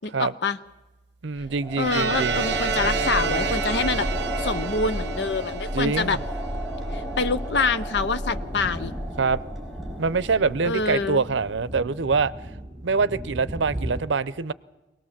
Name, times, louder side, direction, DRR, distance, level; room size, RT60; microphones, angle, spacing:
voice 1, 0.0-0.6 1.8-4.1 4.4-6.2 6.9-8.9 10.6-11.2, left 4 dB, 70° left, 12 dB, 0.7 m, -26 dB
voice 2, 1.2-2.4 5.7-6.2 9.2-9.4 10.0-12.3 12.8-14.5, right 4 dB, 85° right, 18 dB, 0.6 m, -24 dB
sound 1, 1.4-10.7, equal, ahead, 4.2 m, -31 dB
sound 2, 1.8-6.6, right 6 dB, 65° right, 0.9 m, -30 dB
sound 3, 8.3-14.0, equal, 20° right, 1.8 m, -37 dB
23.0 x 18.5 x 7.4 m, 1.1 s
head